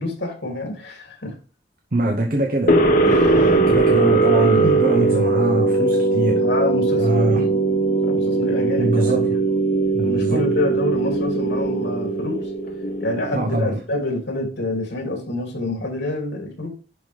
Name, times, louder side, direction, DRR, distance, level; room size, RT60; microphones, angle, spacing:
voice 1, 0.0-1.3 3.0-3.5 4.1-4.9 6.4-7.6 8.0-9.3 10.0-12.4 13.0-16.7, left 2 dB, 85° left, 2.9 m, -27 dB
voice 2, 1.9-2.9 3.3-6.4 7.0-7.4 8.8-9.4 9.9-10.5 13.3-13.8, right 2 dB, 50° right, 0.8 m, -23 dB
sound 1, 2.7-13.5, right 3 dB, 50° left, 1.0 m, -19 dB
11.0 x 4.0 x 3.4 m
head